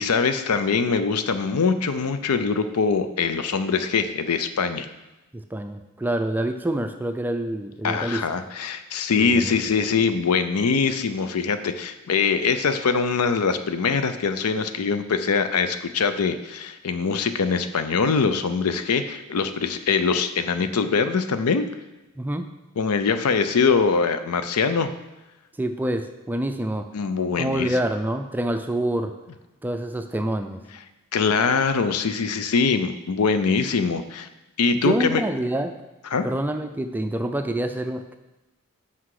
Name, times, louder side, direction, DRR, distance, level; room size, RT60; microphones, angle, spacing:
voice 1, 0.0-4.9 7.8-21.7 22.8-24.9 26.9-27.7 31.1-34.3 34.6-35.2 36.1-36.3, left 5 dB, 90° left, 10 dB, 0.5 m, -23 dB
voice 2, 5.3-8.2 9.2-9.6 22.2-22.5 25.6-26.9 27.3-29.1 29.6-30.6 34.7-35.7 36.2-38.2, right 1 dB, 10° right, 7 dB, 0.3 m, -26 dB
6.0 x 5.7 x 4.7 m, 1.0 s
head